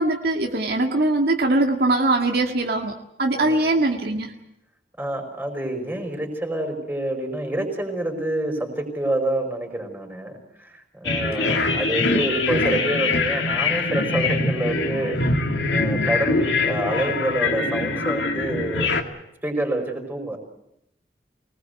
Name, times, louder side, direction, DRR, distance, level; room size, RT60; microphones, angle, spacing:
voice 1, 0.0-2.9 3.2-4.3, right 2 dB, 60° right, 1 dB, 2.0 m, -21 dB
voice 2, 3.3-3.7 5.0-15.2 15.7-18.9 19.4-20.4, right 1 dB, 10° right, 3 dB, 5.2 m, -27 dB
sound 1, 11.0-19.0, left 3 dB, 85° left, 2.1 m, -23 dB
25.5 x 19.5 x 8.0 m, 0.82 s
head